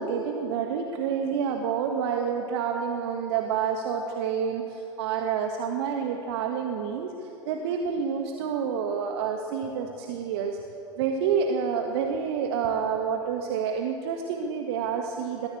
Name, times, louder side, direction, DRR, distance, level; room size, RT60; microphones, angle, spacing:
voice 1, 0.0-10.6 11.0-15.5, right 6 dB, 60° right, 3 dB, 1.6 m, -28 dB
21.0 x 15.0 x 8.5 m, 3.0 s
figure-of-eight pair, 85°, 16 cm